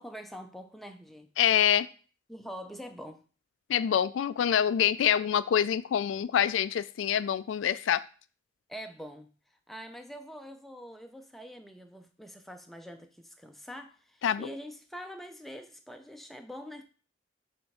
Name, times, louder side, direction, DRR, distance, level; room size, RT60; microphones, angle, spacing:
voice 1, 0.0-1.3 2.3-3.2 8.7-9.3 9.7-16.8, equal, ahead, 0.5 m, -44 dB
voice 2, 1.4-1.9 3.7-8.0 14.2-14.5, left 9 dB, 85° left, 0.3 m, -26 dB
5.4 x 3.4 x 5.6 m
head